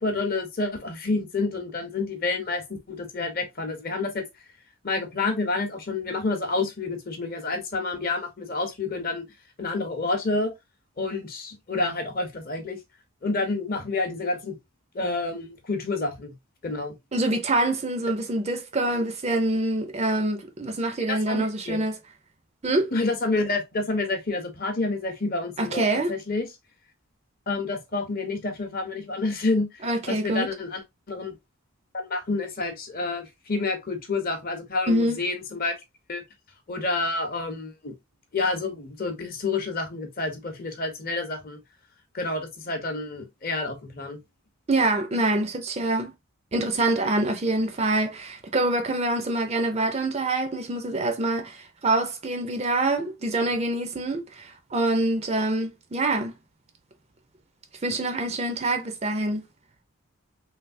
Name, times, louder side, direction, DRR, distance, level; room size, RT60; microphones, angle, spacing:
voice 1, 0.0-2.6 2.9-4.2 4.8-9.2 9.6-10.5 11.0-12.8 13.2-14.6 14.9-16.3 16.6-16.9 21.1-21.8 22.9-26.5 27.5-29.7 30.1-30.8 31.1-31.3 31.9-35.7 36.1-36.2 36.7-37.9 38.3-41.6 42.1-44.2, left 3 dB, 40° left, 0.8 m, -28 dB
voice 2, 17.1-22.0 22.6-22.9 25.6-26.1 29.8-30.5 34.9-35.2 44.7-46.1 46.5-56.3 57.8-59.4, right 2 dB, 30° right, 0.4 m, -25 dB
3.2 x 2.7 x 2.6 m
head